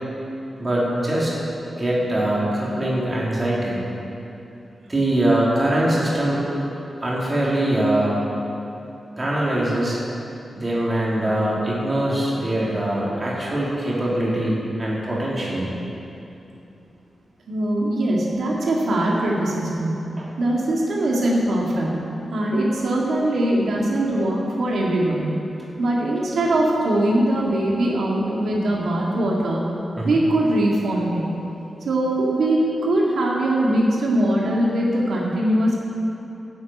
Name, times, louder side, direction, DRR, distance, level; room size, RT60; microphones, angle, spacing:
voice 1, 0.6-1.3 1.7-3.8 4.9-6.4 7.0-8.2 9.2-10.0 10.6-15.8 20.2-20.3 30.0-30.2, right 1 dB, 25° right, -6 dB, 3.1 m, -22 dB
voice 2, 17.5-20.0 20.4-22.0 22.3-25.3 25.8-29.7 30.0-31.4 31.9-35.8, right 1 dB, 85° right, -3 dB, 2.0 m, -21 dB
11.0 x 8.5 x 8.3 m, 2.9 s
wide cardioid pair, 135°, 0 cm